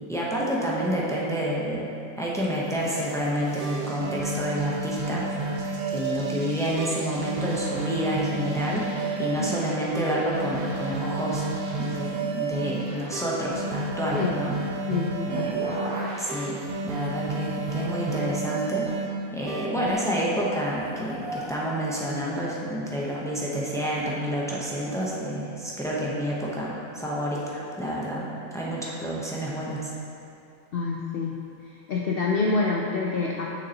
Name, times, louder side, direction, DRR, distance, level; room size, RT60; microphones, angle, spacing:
voice 1, 0.1-1.9 2.2-5.2 5.9-11.5 11.8-14.5 15.3-15.6 16.2-18.9 19.3-28.2 28.5-29.9, equal, 5° left, -5 dB, 0.5 m, -29 dB
sound 1, 2.5-21.5, right 1 dB, 90° right, 1.5 m, -43 dB
sound 2, 3.2-3.3 3.6-6.4 6.8-9.6 9.9-12.7 13.1-15.9 16.3-19.1 19.5-19.9, right 3 dB, 60° right, 0.6 m, -31 dB
voice 2, 14.9-15.5 30.7-31.4 31.9-33.5, left 4 dB, 75° left, -2 dB, 0.5 m, -27 dB
6.5 x 6.3 x 2.8 m, 2.6 s
omnidirectional pair, 1.5 m